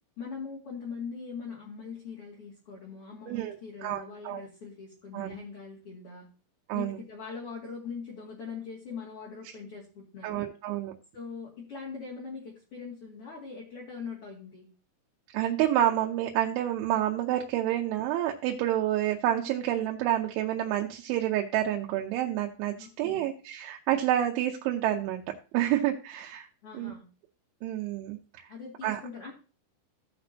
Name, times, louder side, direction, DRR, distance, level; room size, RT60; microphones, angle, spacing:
voice 1, 0.2-6.3 6.7-10.4 11.1-14.7 22.8-23.3 26.6-27.0 28.5-29.3, left 5 dB, 40° left, -5 dB, 2.3 m, -41 dB
voice 2, 3.8-4.4 5.1-5.4 6.7-7.0 10.2-10.9 15.3-25.2 25.5-26.5 26.7-26.9 27.6-28.5 28.8-29.0, right 12 dB, 85° right, 1 dB, 3.2 m, -28 dB
16.5 x 6.1 x 2.8 m, 0.35 s
omnidirectional pair, 5.3 m